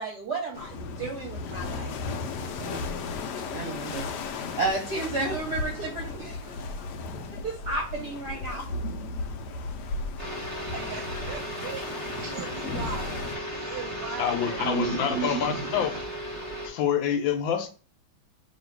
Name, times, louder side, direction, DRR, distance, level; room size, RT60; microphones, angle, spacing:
voice 1, 0.0-1.9 2.6-2.8 3.5-6.9 7.3-8.7 10.7-11.1, right 3 dB, 60° right, 1.1 m, -33 dB
sound 1, 0.5-13.4, left 3 dB, 90° left, 0.9 m, -35 dB
sound 2, 10.2-16.7, equal, 25° right, 1.2 m, -35 dB
voice 2, 10.9-13.2 13.5-15.9, right 8 dB, 85° right, 0.9 m, -36 dB
voice 3, 14.2-15.9 16.6-17.7, left 8 dB, 75° left, 1.3 m, -27 dB
3.1 x 2.8 x 4.4 m
omnidirectional pair, 2.4 m